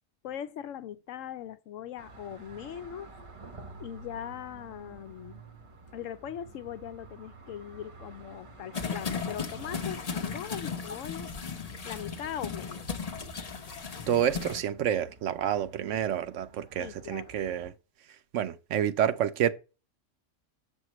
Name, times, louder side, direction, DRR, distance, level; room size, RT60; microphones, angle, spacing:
voice 1, 0.2-3.1 3.8-5.4 5.9-11.3 11.8-12.7 16.8-17.3, left 10 dB, 85° left, 1.0 m, -40 dB
sound 1, 2.0-17.7, right 2 dB, 30° right, 0.7 m, -51 dB
sound 2, 8.7-14.6, left 5 dB, 35° left, 0.7 m, -36 dB
voice 2, 14.1-17.7 18.3-19.5, right 10 dB, 75° right, 1.0 m, -28 dB
7.0 x 6.5 x 3.0 m
omnidirectional pair, 1.3 m